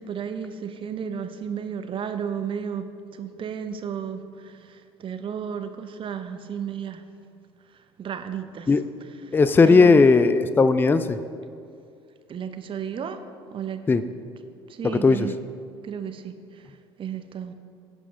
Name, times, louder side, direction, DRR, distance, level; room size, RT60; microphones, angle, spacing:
voice 1, 0.0-7.0 7.7-8.7 9.0-9.4 9.7-10.0 12.3-13.2 13.5-13.8 14.7-15.4 15.8-17.5, right 7 dB, 40° right, 8 dB, 0.8 m, -33 dB
voice 2, 9.3-11.2 13.9-14.0 14.8-15.3, left 4 dB, 15° left, 12 dB, 0.4 m, -17 dB
16.0 x 5.4 x 3.7 m, 2.4 s
hypercardioid pair, 60°, 14 cm